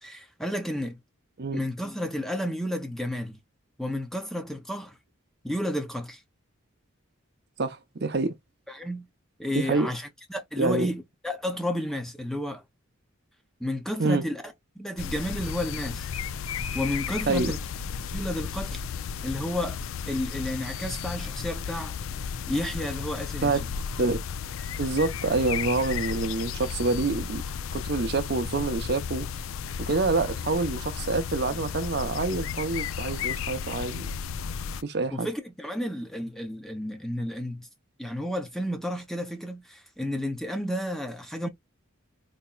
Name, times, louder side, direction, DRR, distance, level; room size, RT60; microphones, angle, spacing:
voice 1, 0.0-1.0 1.5-3.4 3.8-5.0 5.4-6.2 8.7-9.1 9.4-12.6 13.6-16.1 16.7-17.6 18.1-18.8 19.2-19.8 20.1-22.0 22.5-23.7 35.1-37.7 38.0-41.5, left 1 dB, ahead, 0.6 m, -32 dB
voice 2, 7.6-8.3 9.5-9.9 10.6-10.9 14.0-14.2 17.3-17.5 23.4-23.6 24.0-24.2 24.8-27.4 27.7-29.3 29.8-34.1 34.8-35.3, right 3 dB, 50° right, 0.6 m, -27 dB
sound 1, 15.0-34.8, left 6 dB, 75° left, 0.4 m, -34 dB
4.1 x 2.9 x 2.2 m
head